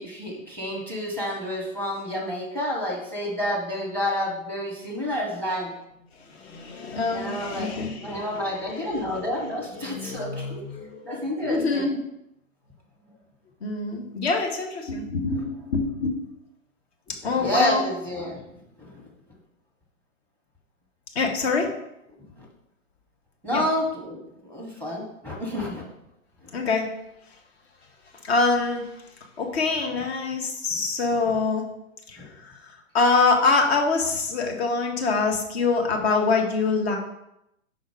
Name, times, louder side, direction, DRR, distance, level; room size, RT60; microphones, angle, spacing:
voice 1, 0.0-5.7 7.1-10.6 11.0-11.9 17.2-18.4 18.8-18.9 22.2-22.5 23.4-24.2 24.4-25.8 26.4-26.5 32.2-32.3, left 1 dB, 5° left, -1 dB, 1.0 m, -29 dB
voice 2, 6.2-11.1 11.5-12.0 13.6-16.2 17.1-17.8 21.1-21.7 23.5-23.6 26.5-26.9 28.2-28.9 29.4-31.7 32.1-37.0, left 4 dB, 45° left, 2 dB, 1.3 m, -25 dB
5.2 x 3.9 x 4.8 m, 0.83 s
figure-of-eight pair, 125°, 43 cm